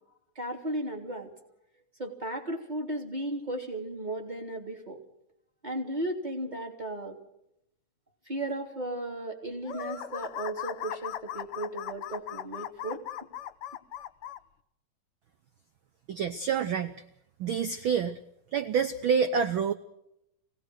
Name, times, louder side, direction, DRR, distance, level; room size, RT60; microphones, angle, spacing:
voice 1, 0.3-1.3 2.0-5.0 5.6-7.2 8.3-13.0, right 1 dB, 15° right, 2 dB, 3.2 m, -35 dB
sound 1, 9.6-14.4, left 10 dB, 60° left, 1.7 m, -38 dB
voice 2, 16.1-17.0 17.4-18.2 18.5-19.7, right 6 dB, 70° right, 9 dB, 1.2 m, -27 dB
25.5 x 18.0 x 6.4 m, 0.79 s
omnidirectional pair, 3.3 m